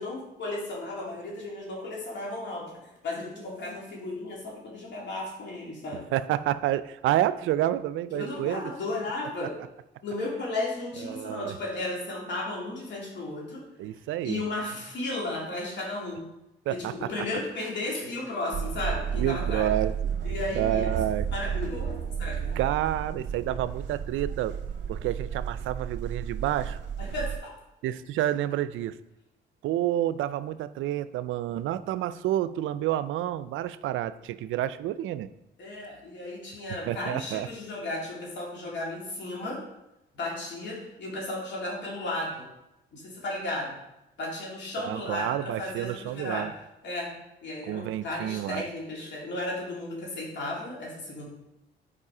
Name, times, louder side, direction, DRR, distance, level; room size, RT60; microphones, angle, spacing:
voice 1, 0.0-6.0 8.1-9.5 10.0-13.6 14.2-16.2 16.7-19.7 20.2-20.9 21.3-22.6 27.0-27.5 35.6-39.6 40.1-42.4 42.9-43.7 44.2-46.5 46.8-47.1 47.4-51.2, left 2 dB, 65° left, -3 dB, 2.7 m, -34 dB
voice 2, 6.1-8.7 9.4-9.5 11.0-11.6 13.8-14.4 16.7-17.1 19.2-20.1 20.5-21.3 22.6-24.6 24.9-26.8 27.8-29.0 29.6-35.3 36.9-37.5 44.8-46.5 47.6-48.7, right 12 dB, 80° right, 15 dB, 0.4 m, -29 dB
sound 1, 18.5-27.4, right 7 dB, 65° right, 0.9 m, -32 dB
7.3 x 4.9 x 4.9 m, 0.91 s
cardioid pair, 90°, 20 cm